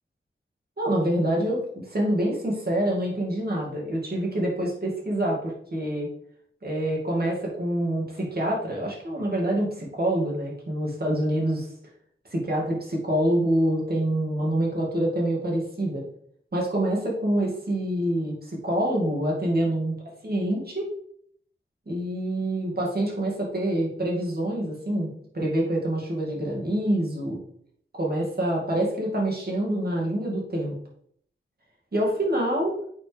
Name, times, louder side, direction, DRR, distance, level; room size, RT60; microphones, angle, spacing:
voice 1, 0.8-6.1 6.6-11.7 12.3-16.1 16.5-21.0 21.9-27.4 27.9-30.7 31.9-32.8, right 1 dB, 50° right, -3 dB, 2.4 m, -26 dB
8.1 x 4.6 x 3.4 m, 0.64 s
wide cardioid pair, 85°, 21 cm